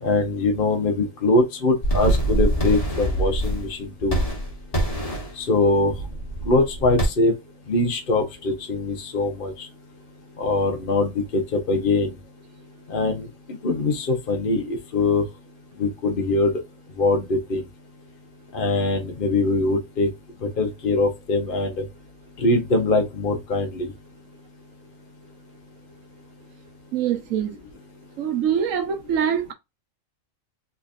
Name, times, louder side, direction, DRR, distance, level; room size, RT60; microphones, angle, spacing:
voice 1, 0.0-4.2 5.4-6.0 6.4-7.3 7.7-9.7 10.4-12.1 12.9-13.3 13.6-15.2 15.8-16.6 17.0-17.6 18.5-20.1 20.6-21.8 22.4-23.9, left 2 dB, 45° left, 1.1 m, -22 dB
sound 1, 1.8-3.7 4.0-5.3 5.8-7.1, right 1 dB, 30° left, 1.5 m, -24 dB
voice 2, 26.9-27.6 28.2-29.5, right 8 dB, 90° right, 1.2 m, -24 dB
3.9 x 3.3 x 2.6 m
omnidirectional pair, 1.3 m